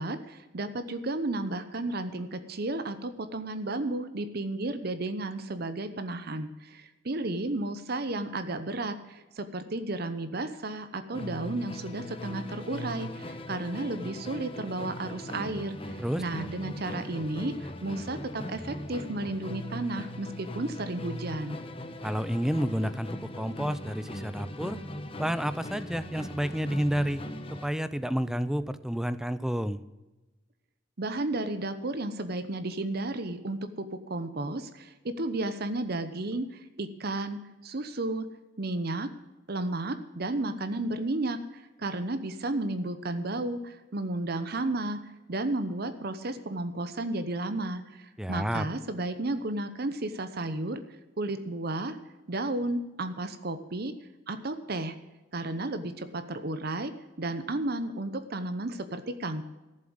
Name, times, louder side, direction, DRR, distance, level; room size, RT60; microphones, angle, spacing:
voice 1, 0.0-21.6 31.0-38.3 38.6-39.1 39.5-50.8 51.2-52.0 52.3-53.9 54.3-54.9 55.3-56.9 57.2-59.5, right 2 dB, 55° right, 10 dB, 0.9 m, -33 dB
Musical instrument, 11.1-27.8, left 1 dB, 30° left, 1.1 m, -39 dB
voice 2, 22.0-24.8 25.2-27.2 27.6-29.8 48.2-48.7, equal, 5° right, 13 dB, 0.5 m, -30 dB
14.0 x 7.7 x 7.8 m, 1.1 s
head